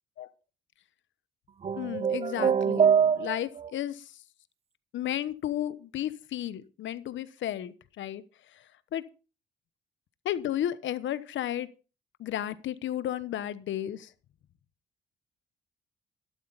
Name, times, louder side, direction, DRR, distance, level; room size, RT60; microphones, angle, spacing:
sound 1, 1.6-3.7, right 7 dB, 30° right, 0.5 m, -24 dB
voice 1, 1.8-4.1 4.9-8.2 8.5-8.6 8.9-9.0 10.2-11.7 12.2-14.1, left 11 dB, 70° left, 15 dB, 1.1 m, -33 dB
12.5 x 12.0 x 4.1 m, 0.34 s
cardioid pair, 90°, 20 cm